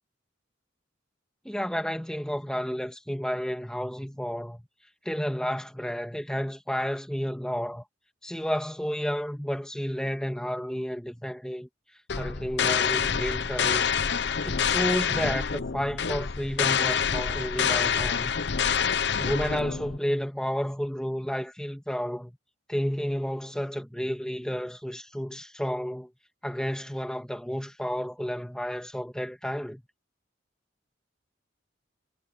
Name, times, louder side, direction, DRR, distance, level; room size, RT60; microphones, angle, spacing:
voice 1, 1.4-4.7 5.1-7.8 8.2-11.7 12.1-13.9 14.4-18.3 19.2-22.4 22.7-26.1 26.4-29.8, equal, 5° left, 2.0 m, -31 dB
sound 1, 12.1-20.0, left 7 dB, 60° left, 0.7 m, -27 dB
head